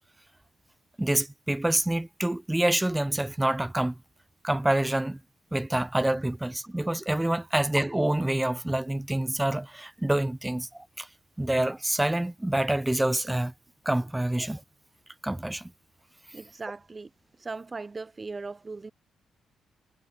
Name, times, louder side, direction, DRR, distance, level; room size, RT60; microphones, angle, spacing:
voice 1, 1.0-3.9 4.4-5.2 5.5-11.1 11.4-13.5 13.9-14.6 15.2-15.7, right 1 dB, 10° right, 0.7 m, -27 dB
voice 2, 16.3-17.1 17.4-18.9, right 3 dB, 25° right, 1.3 m, -38 dB
cardioid pair, 90°, 0 cm